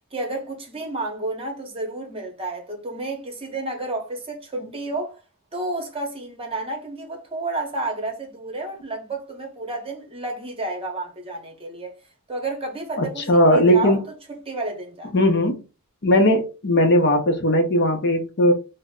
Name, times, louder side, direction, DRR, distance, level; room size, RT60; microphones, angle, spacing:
voice 1, 0.1-5.2 5.5-11.9 12.3-15.1, right 2 dB, 25° right, 0.8 m, -31 dB
voice 2, 13.0-14.0 15.1-15.5 16.0-18.5, equal, 50° left, 0.7 m, -18 dB
3.2 x 2.0 x 3.7 m
head